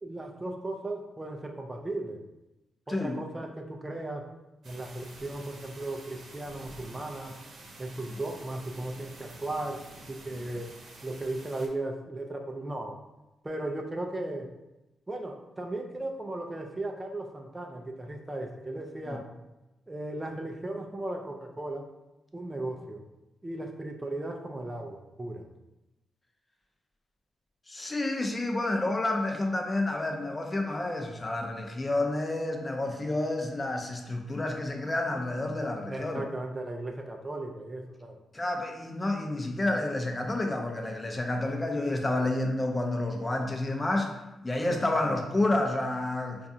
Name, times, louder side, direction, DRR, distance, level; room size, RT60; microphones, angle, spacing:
voice 1, 0.0-2.2 2.9-4.3 4.6-7.4 7.8-9.8 10.1-10.8 11.0-13.0 13.4-14.5 15.1-19.3 19.9-21.9 22.3-23.0 23.4-25.5 35.8-38.2, right 2 dB, 20° right, 2 dB, 0.4 m, -36 dB
voice 2, 2.9-3.2 8.1-8.2 19.1-19.2 27.7-36.2 38.3-44.2 44.4-46.4, left 2 dB, 25° left, 2 dB, 0.6 m, -29 dB
sound 1, 4.6-11.7, right 2 dB, 70° right, 0.8 m, -49 dB
4.6 x 2.4 x 2.7 m, 0.97 s
cardioid pair, 70°, 0 cm